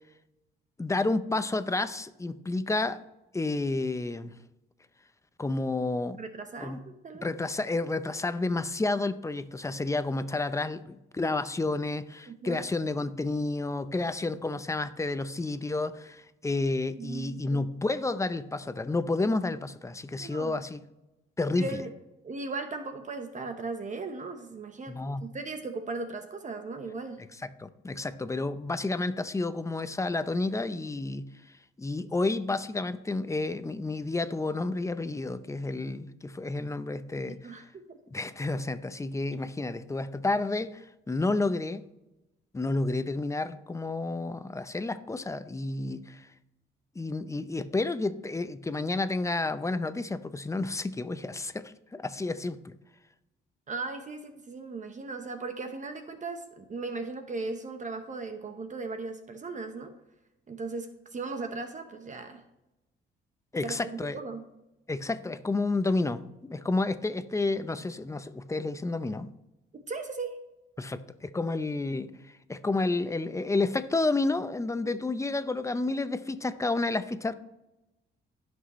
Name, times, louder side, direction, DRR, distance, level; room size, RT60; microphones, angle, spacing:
voice 1, 0.8-3.0 3.3-4.3 5.4-6.2 6.6-6.8 7.1-20.8 21.4-21.8 24.9-25.3 27.4-31.3 31.8-37.7 38.1-41.8 42.5-46.3 47.0-52.7 63.5-64.2 64.9-69.3 70.8-72.1 72.5-77.3, left 2 dB, 15° left, 12 dB, 0.6 m, -30 dB
voice 2, 6.1-7.3 12.3-12.6 17.0-17.6 20.2-20.6 21.6-21.9 22.2-27.2 37.3-38.0 53.7-59.9 60.5-62.4 63.6-64.4 69.7-70.4 74.8-74.9, right 3 dB, 40° right, 7 dB, 1.0 m, -37 dB
16.5 x 6.2 x 3.1 m, 0.96 s
cardioid pair, 90°, 20 cm